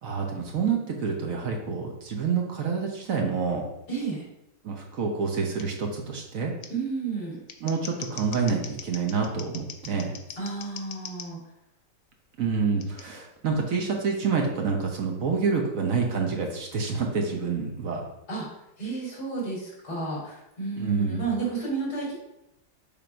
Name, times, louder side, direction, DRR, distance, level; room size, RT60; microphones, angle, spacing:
voice 1, 0.0-3.7 4.6-6.5 7.6-10.2 12.4-18.0 20.8-21.2, right 5 dB, 55° right, 1 dB, 1.1 m, -27 dB
voice 2, 3.9-4.2 6.7-7.4 10.4-11.4 18.3-18.4 18.8-22.1, right 4 dB, 55° left, -5 dB, 3.3 m, -31 dB
Scissors, 5.6-5.7 6.6-6.7 7.3-11.3 12.8-13.0, left 8 dB, 90° left, 1.4 m, -41 dB
6.9 x 3.1 x 5.0 m, 0.85 s
omnidirectional pair, 2.0 m